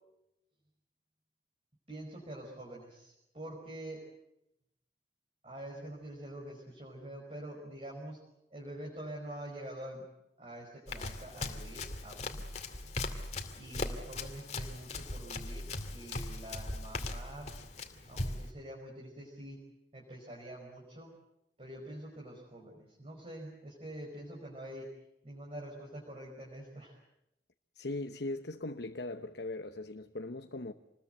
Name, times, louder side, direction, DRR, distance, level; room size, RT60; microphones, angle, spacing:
voice 1, 1.9-4.0 5.4-8.2 8.5-10.0 10.4-12.4 13.6-17.5 18.1-19.6 19.9-21.1 21.6-24.9 25.2-27.0, right 1 dB, 30° right, 5.4 m, -46 dB
Run, 10.9-18.5, left 2 dB, 35° left, 2.4 m, -39 dB
voice 2, 27.8-30.7, left 2 dB, 65° left, 1.0 m, -39 dB
28.0 x 21.0 x 8.0 m
head